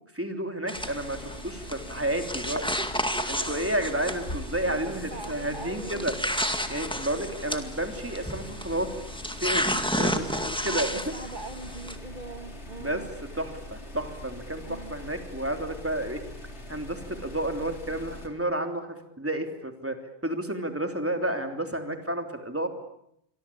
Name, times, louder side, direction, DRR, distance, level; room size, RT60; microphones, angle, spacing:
voice 1, 0.1-2.6 3.3-6.1 6.7-8.9 9.4-9.7 9.9-11.0 12.8-13.1 13.3-16.2 16.7-22.7, right 1 dB, 10° right, 5 dB, 3.2 m, -31 dB
sound 1, 0.7-18.3, left 1 dB, 85° left, 3.8 m, -42 dB
sound 2, 0.7-12.0, equal, 5° left, 2.1 m, -32 dB
voice 2, 2.5-3.5 4.6-6.2 10.6-13.1 14.7-14.9, right 3 dB, 45° right, 6 dB, 1.9 m, -41 dB
28.0 x 23.5 x 8.5 m, 0.75 s
omnidirectional pair, 1.1 m